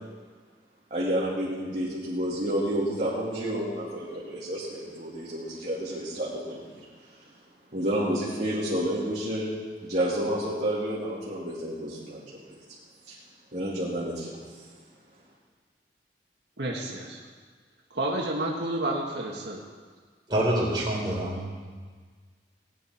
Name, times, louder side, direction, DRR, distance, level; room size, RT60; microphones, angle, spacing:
voice 1, 0.9-7.2 7.7-9.5 9.8-12.6 13.1-13.2 13.5-14.6, right 1 dB, 40° right, -8 dB, 2.6 m, -30 dB
voice 2, 16.6-17.2 17.9-19.7, right 1 dB, 80° right, -2 dB, 1.7 m, -30 dB
voice 3, 20.3-21.4, right 1 dB, 25° right, -5 dB, 4.0 m, -26 dB
18.5 x 10.5 x 4.5 m, 1.6 s
head